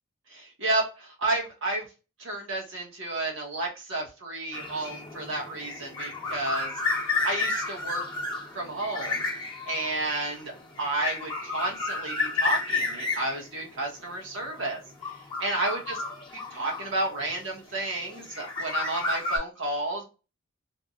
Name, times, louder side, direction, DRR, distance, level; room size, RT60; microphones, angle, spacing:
voice 1, 0.3-1.9 2.2-6.7 7.2-8.0 8.5-9.2 9.7-10.5 10.8-14.8 15.0-15.9 16.5-20.0, right 2 dB, 65° right, -1 dB, 1.2 m, -31 dB
sound 1, 4.5-17.4 18.1-19.4, left 3 dB, 20° left, 0.8 m, -32 dB
3.4 x 2.2 x 2.6 m, 0.31 s
head